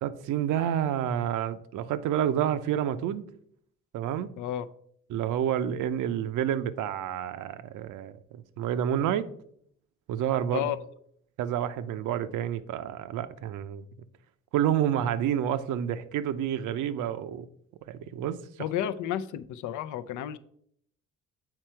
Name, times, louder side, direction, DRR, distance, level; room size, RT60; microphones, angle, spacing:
voice 1, 0.0-3.2 3.9-4.3 5.1-9.3 10.1-10.7 11.4-13.9 14.5-17.5 17.9-18.4, right 10 dB, 85° right, 0.6 m, -29 dB
voice 2, 18.6-20.4, left 11 dB, 80° left, 0.5 m, -31 dB
7.7 x 4.5 x 4.4 m
cardioid pair, 90°, 30 cm